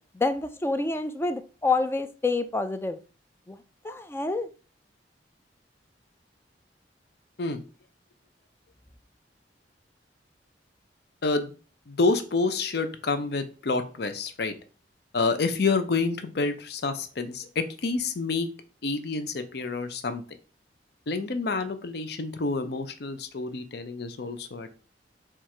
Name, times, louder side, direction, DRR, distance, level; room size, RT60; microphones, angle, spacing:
voice 1, 0.1-3.0 3.5-3.6 3.8-4.5, left 3 dB, 15° left, 10 dB, 0.3 m, -27 dB
voice 2, 11.2-11.5 11.9-14.6 15.1-18.5 18.8-20.2 21.1-24.7, left 3 dB, 65° left, 9 dB, 0.6 m, -28 dB
4.5 x 2.5 x 4.5 m, 0.37 s
head